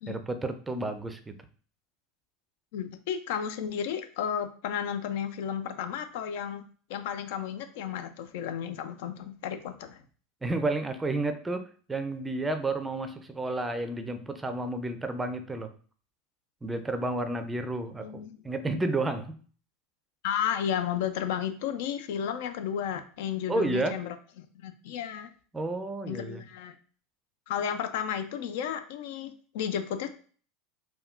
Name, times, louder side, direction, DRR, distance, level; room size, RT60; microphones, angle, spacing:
voice 1, 0.1-1.4 10.4-15.7 16.6-19.4 23.5-24.0 25.5-26.4, right 2 dB, 15° right, 8 dB, 0.4 m, -31 dB
voice 2, 2.7-6.6 6.9-10.0 17.9-18.4 20.2-25.3 26.1-26.7 27.5-30.1, left 8 dB, 65° left, 8 dB, 0.4 m, -33 dB
3.5 x 2.2 x 2.4 m, 0.42 s
hypercardioid pair, 85°, 0 cm